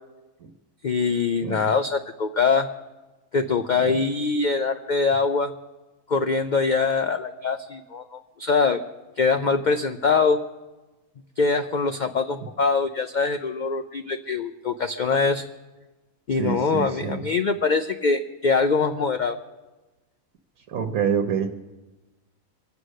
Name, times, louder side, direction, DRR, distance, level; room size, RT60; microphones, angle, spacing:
voice 1, 0.8-2.7 3.3-5.5 6.1-8.8 9.2-10.4 11.4-15.4 16.3-19.4, left 4 dB, 60° left, 7 dB, 0.5 m, -23 dB
voice 2, 16.4-17.2 20.7-21.6, right 7 dB, 80° right, 5 dB, 1.3 m, -26 dB
24.0 x 8.1 x 6.4 m, 1.2 s
omnidirectional pair, 1.5 m